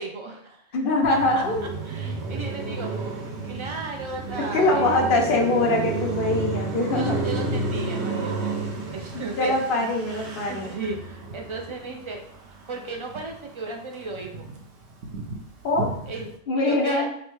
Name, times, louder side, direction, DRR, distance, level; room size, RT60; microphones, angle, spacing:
voice 1, 0.0-0.6 1.3-1.4 1.8-3.1 3.4-4.9 6.9-8.5 8.9-9.9 10.5-12.2 12.7-14.5 16.1-16.3 16.6-17.1, right 3 dB, 50° right, 2 dB, 0.3 m, -35 dB
voice 2, 0.7-1.7 4.5-7.1 9.1-10.7 15.6-15.9 16.5-17.1, left 2 dB, 55° left, 0 dB, 0.9 m, -23 dB
Car passing by, 1.0-13.5 13.8-16.3, right 3 dB, 90° right, 1.0 m, -31 dB
5.2 x 2.2 x 3.0 m, 0.69 s
omnidirectional pair, 1.1 m